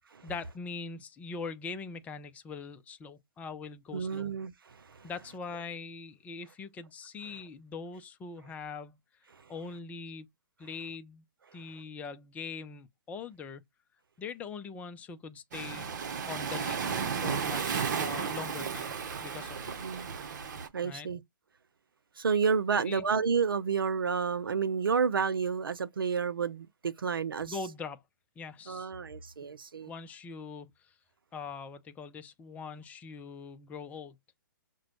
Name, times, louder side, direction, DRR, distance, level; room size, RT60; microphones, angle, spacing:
voice 1, 0.2-4.3 5.0-9.0 9.5-10.3 10.6-11.2 11.5-13.6 14.2-15.9 16.3-17.0 17.2-18.9 19.2-19.6 20.8-21.1 22.7-23.0 27.5-28.0 28.4-28.9 29.9-30.7 31.3-34.2, left 5 dB, 15° left, 0.5 m, -42 dB
voice 2, 3.9-5.1 9.3-9.5 19.8-20.1 20.7-21.2 22.2-27.6 28.7-29.9, right 6 dB, 80° right, 0.6 m, -30 dB
Waves surf, 15.5-20.7, right 6 dB, 55° right, 0.9 m, -34 dB
6.0 x 2.2 x 2.9 m
hypercardioid pair, 130°, 11 cm